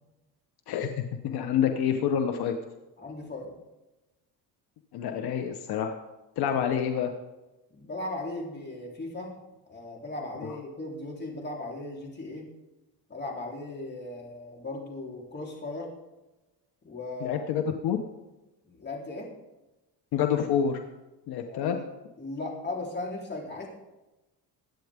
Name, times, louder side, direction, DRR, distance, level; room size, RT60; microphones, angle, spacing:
voice 1, 0.7-2.6 4.9-5.9 6.4-7.1 10.4-10.6 17.2-18.0 20.1-20.8 21.3-21.8, left 8 dB, 70° left, 6 dB, 1.2 m, -27 dB
voice 2, 3.0-3.5 7.7-9.4 9.7-12.5 13.1-15.9 16.8-17.5 18.7-19.3 21.4-21.8 22.2-23.7, left 2 dB, 25° left, -1 dB, 3.8 m, -37 dB
22.5 x 9.3 x 3.7 m, 1.0 s
cardioid pair, 120°, 39 cm